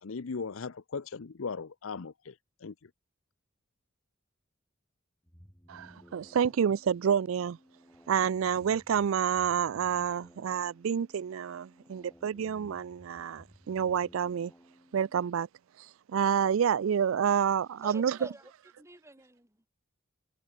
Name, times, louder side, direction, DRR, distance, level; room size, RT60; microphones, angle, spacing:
voice 1, 0.0-2.3 2.6-2.9, left 5 dB, 90° left, 0.7 m, -38 dB
sound 1, 5.2-15.2, equal, 10° left, 7.9 m, -57 dB
voice 2, 5.7-7.6 8.1-14.5 14.9-15.5 15.8-18.2, right 8 dB, 85° right, 0.4 m, -28 dB
voice 3, 17.8-18.5 18.8-19.7, right 1 dB, 15° right, 7.3 m, -48 dB
head